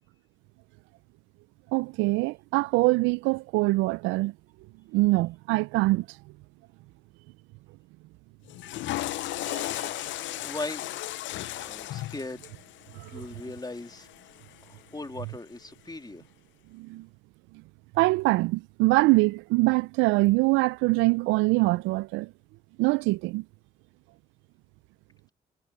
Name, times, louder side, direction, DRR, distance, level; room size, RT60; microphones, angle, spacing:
voice 1, 1.7-4.3 4.9-6.1 9.4-9.9 12.9-13.2 16.7-17.1 18.0-22.3 22.8-23.4, right 22 dB, 85° right, 0.4 m, -24 dB
Water / Toilet flush, 8.5-14.7, left 15 dB, 75° left, 0.5 m, -36 dB
voice 2, 10.2-10.9 11.6-12.4 13.1-14.1 14.6-16.2, left 2 dB, 20° left, 2.7 m, -38 dB
hypercardioid pair, 45°, 19 cm